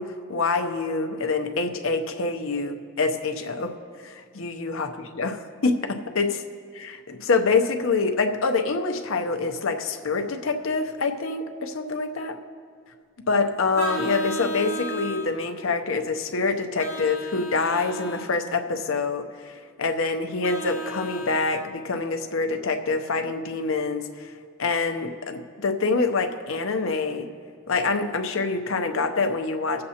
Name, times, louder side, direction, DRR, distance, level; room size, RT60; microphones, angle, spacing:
voice 1, 0.0-3.8 4.0-6.4 6.7-12.4 13.3-24.3 24.6-27.3 27.7-29.8, left 4 dB, 65° left, 6 dB, 0.7 m, -26 dB
Vehicle horn car horn honking, 13.7-15.3 16.8-18.3 20.4-21.6, right 2 dB, 15° right, 1.5 m, -34 dB
19.0 x 7.6 x 2.8 m, 2.2 s
head